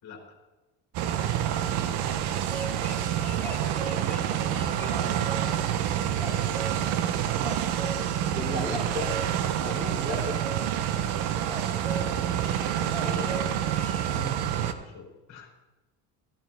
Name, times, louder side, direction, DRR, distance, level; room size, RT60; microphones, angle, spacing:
voice 1, 0.0-0.4 11.8-12.4 14.6-15.5, left 5 dB, 40° left, -2 dB, 3.4 m, -46 dB
sound 1, 0.9-14.7, right 10 dB, 70° right, 1.0 m, -28 dB
voice 2, 1.7-2.0 4.0-6.5 7.8-8.0 8.3-9.1 9.6-10.3 12.9-13.6 14.0-14.3, equal, 30° right, -4 dB, 5.1 m, -38 dB
sound 2, 2.4-5.4 6.2-6.8 7.4-8.0 8.7-9.3 10.0-10.7 11.5-12.0 12.3-14.1, right 2 dB, 5° left, 1.5 m, -39 dB
14.0 x 12.5 x 3.5 m, 1.1 s
cardioid pair, 115°, 40 cm